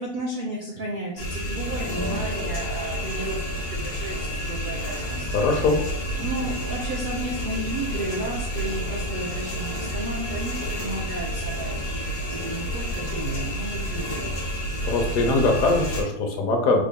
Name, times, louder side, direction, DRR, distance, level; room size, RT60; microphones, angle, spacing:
voice 1, 0.0-5.3 6.2-12.0 12.3-14.4, right 2 dB, 80° right, -2 dB, 0.4 m, -33 dB
sound 1, 1.2-16.0, equal, 85° left, 1.5 m, -30 dB
voice 2, 5.3-5.8 14.8-16.8, left 3 dB, 70° left, 2 dB, 1.1 m, -21 dB
3.7 x 2.2 x 3.6 m, 0.72 s
omnidirectional pair, 1.6 m